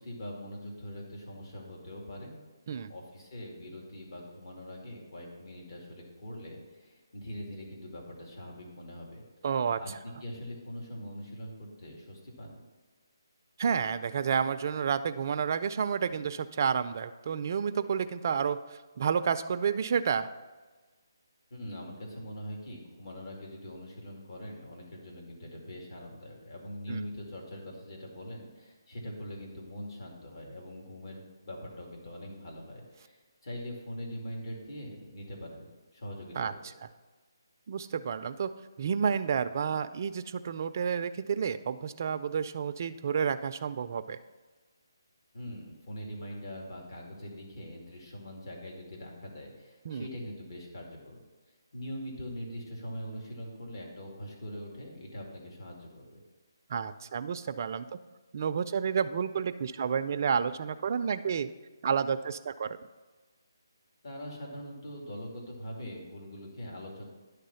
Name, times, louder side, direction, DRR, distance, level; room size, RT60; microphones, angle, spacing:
voice 1, 0.0-2.4 2.9-9.2 9.8-12.5 21.5-36.7 45.3-51.2 51.7-56.2 64.0-67.1, equal, 65° left, -2 dB, 2.3 m, -42 dB
voice 2, 9.4-10.0 13.6-20.3 26.9-27.0 36.4-36.5 37.7-38.5 38.8-44.2 49.9-50.1 56.7-58.0 58.3-61.5 61.8-62.8, right 7 dB, 45° right, 9 dB, 0.3 m, -30 dB
10.5 x 3.5 x 5.6 m, 1.3 s
hypercardioid pair, 160°, 2 cm